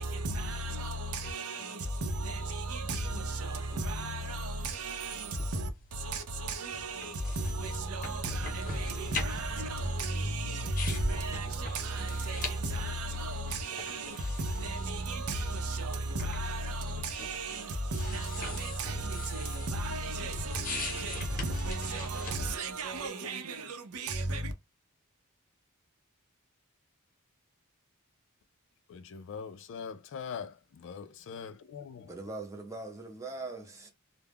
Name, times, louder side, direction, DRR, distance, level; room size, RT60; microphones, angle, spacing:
voice 1, 0.0-24.5, right 2 dB, 75° right, 0.6 m, -34 dB
sound 1, 3.3-23.1, left 2 dB, 40° left, 0.8 m, -43 dB
voice 2, 28.9-32.1, left 6 dB, 60° left, 0.3 m, -42 dB
voice 3, 32.1-33.9, right 3 dB, 15° right, 0.7 m, -41 dB
2.2 x 2.0 x 3.4 m
head